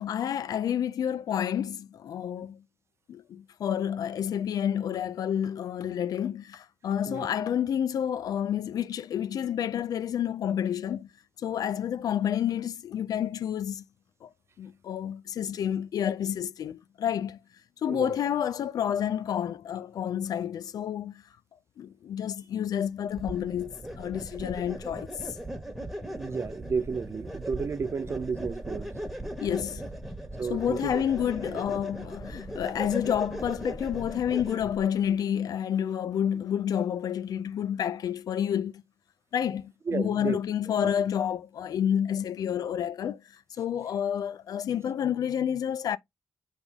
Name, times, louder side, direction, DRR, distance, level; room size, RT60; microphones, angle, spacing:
voice 1, 0.0-2.6 3.1-11.1 11.4-13.8 14.2-14.3 14.6-17.4 17.8-21.2 21.8-25.1 29.4-29.9 30.5-38.8 39.3-43.2 43.6-46.0, left 9 dB, 75° left, 0.5 m, -29 dB
sound 1, 23.2-34.8, right 1 dB, 5° right, 1.7 m, -38 dB
voice 2, 26.1-28.9 30.4-31.0 39.9-40.4, right 5 dB, 45° right, 0.7 m, -32 dB
8.0 x 3.7 x 3.5 m
cardioid pair, 90°, 7 cm